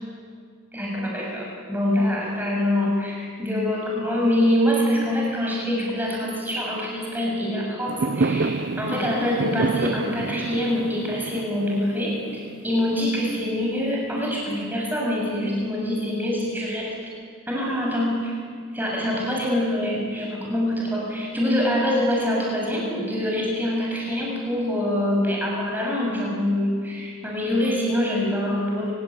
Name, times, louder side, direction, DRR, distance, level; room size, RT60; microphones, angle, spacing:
voice 1, 0.7-17.0 17.5-18.3 18.7-28.9, left 1 dB, 10° right, -2 dB, 7.1 m, -25 dB
Fireworks, 7.9-13.1, right 3 dB, 50° right, 0.6 m, -28 dB
28.5 x 17.5 x 9.9 m, 2.1 s
head